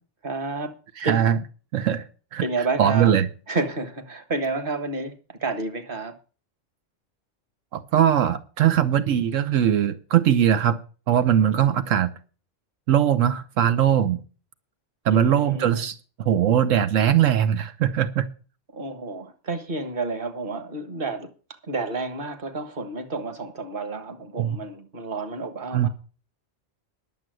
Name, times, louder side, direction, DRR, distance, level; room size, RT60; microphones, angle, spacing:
voice 1, 0.2-0.7 1.0-1.2 2.4-3.1 3.5-6.1 15.1-15.9 18.7-21.3 21.6-25.9, right 3 dB, 45° right, 1.7 m, -30 dB
voice 2, 1.0-1.4 1.7-2.1 2.3-2.4 2.8-3.3 7.7-10.8 11.1-12.1 12.9-14.2 15.0-18.3 24.4-24.6 25.7-25.9, right 10 dB, 85° right, 1.2 m, -20 dB
11.0 x 7.2 x 7.8 m
omnidirectional pair, 1.3 m